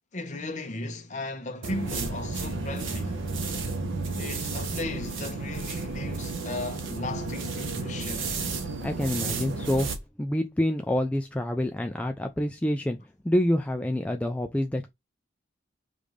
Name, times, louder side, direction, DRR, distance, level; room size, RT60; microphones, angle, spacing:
voice 1, 0.1-3.2 4.2-8.3, left 2 dB, 40° left, 0.9 m, -36 dB
sound 1, 1.6-10.0, right 3 dB, 75° right, 0.9 m, -32 dB
voice 2, 8.8-9.9 10.2-14.9, left 1 dB, 5° left, 0.3 m, -27 dB
5.0 x 2.5 x 3.2 m
head